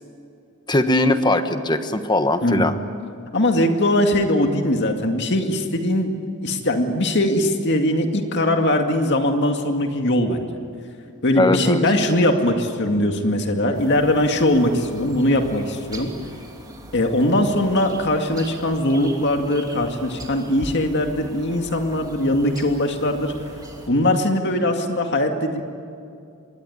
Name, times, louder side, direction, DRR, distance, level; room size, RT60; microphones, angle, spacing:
voice 1, 0.7-2.7 11.4-11.8, left 2 dB, 20° left, 8 dB, 1.3 m, -20 dB
voice 2, 2.4-2.7 3.3-6.1 6.4-10.5 11.2-16.1 16.9-23.3 23.9-25.6, left 1 dB, 50° left, 4 dB, 2.2 m, -20 dB
sound 1, 13.7-23.9, right 1 dB, 15° right, 2.8 m, -41 dB
26.5 x 22.0 x 9.8 m, 2.5 s
head